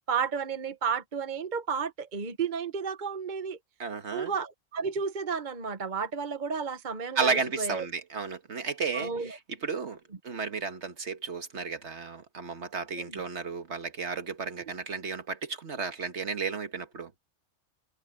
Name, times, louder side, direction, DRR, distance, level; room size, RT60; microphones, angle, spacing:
voice 1, 0.1-3.6 4.1-7.9 8.9-9.4 13.0-13.2, right 6 dB, 40° right, 1.1 m, -32 dB
voice 2, 3.8-4.3 7.1-17.1, right 5 dB, 55° right, 1.7 m, -33 dB
omnidirectional pair, 1.4 m